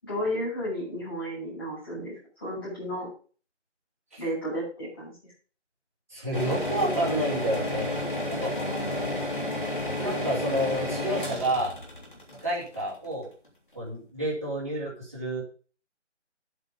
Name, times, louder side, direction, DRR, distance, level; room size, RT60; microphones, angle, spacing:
voice 1, 0.0-3.1 4.2-5.2 8.6-9.3, equal, 20° left, -8 dB, 7.2 m, -33 dB
voice 2, 6.1-8.0 8.3-8.6 8.9-9.0 9.9-11.7 12.3-13.3 13.7-15.4, right 1 dB, 10° right, -9 dB, 2.5 m, -29 dB
sound 1, 6.3-13.2, left 1 dB, 45° left, 3.1 m, -31 dB
11.0 x 8.0 x 5.1 m, 0.39 s
figure-of-eight pair, 180°, 36 cm